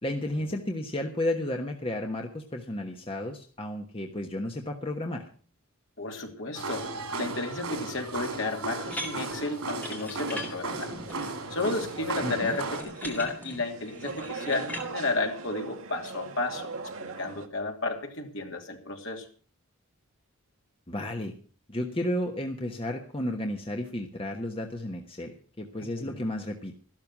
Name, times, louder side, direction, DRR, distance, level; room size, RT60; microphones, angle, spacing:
voice 1, 0.0-5.2 12.2-12.6 20.9-21.3 21.7-26.7, left 1 dB, 25° left, 3 dB, 1.2 m, -32 dB
voice 2, 6.0-6.9 7.2-10.9 11.5-16.7 17.0-19.3 25.8-26.2, left 2 dB, 60° left, 3 dB, 2.7 m, -32 dB
sound 1, 6.5-12.8, right 3 dB, 90° right, 3.6 m, -35 dB
sound 2, 8.9-14.9, left 1 dB, 5° left, 2.1 m, -41 dB
sound 3, 11.0-17.5, right 4 dB, 70° right, 1.5 m, -40 dB
13.5 x 12.5 x 6.0 m, 0.40 s
head